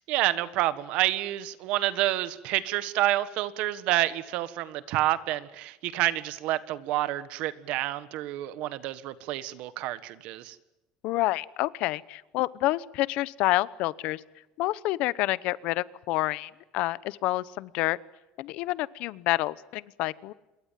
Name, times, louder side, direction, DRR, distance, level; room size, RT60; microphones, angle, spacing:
voice 1, 0.1-10.5, right 15 dB, 55° right, 15 dB, 1.5 m, -28 dB
voice 2, 11.0-14.2 14.6-18.0 18.4-20.3, left 18 dB, 55° left, 19 dB, 0.9 m, -28 dB
27.0 x 22.0 x 7.6 m, 1.0 s
cardioid pair, 180°, 2 cm